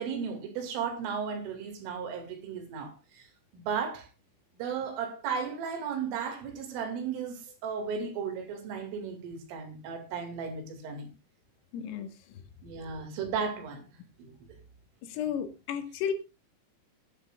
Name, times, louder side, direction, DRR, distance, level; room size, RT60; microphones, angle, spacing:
voice 1, 0.0-3.3 3.5-4.1 4.6-11.1 12.6-13.8 14.2-14.4, right 6 dB, 75° right, 4.7 m, -35 dB
voice 2, 11.7-12.4 15.0-16.1, left 8 dB, 85° left, 4.2 m, -34 dB
21.0 x 9.8 x 2.4 m
omnidirectional pair, 5.8 m